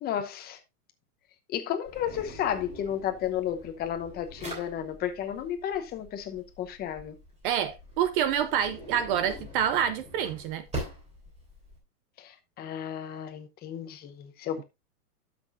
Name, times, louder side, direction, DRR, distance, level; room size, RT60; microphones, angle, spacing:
voice 1, 0.0-0.6 1.5-7.1 12.2-14.6, left 10 dB, 20° left, 0.9 m, -33 dB
Drawer open or close, 1.9-11.8, right 1 dB, 15° right, 3.2 m, -43 dB
voice 2, 7.4-10.6, right 9 dB, 35° right, 0.5 m, -27 dB
12.0 x 6.1 x 2.5 m
supercardioid pair, 145°, 46 cm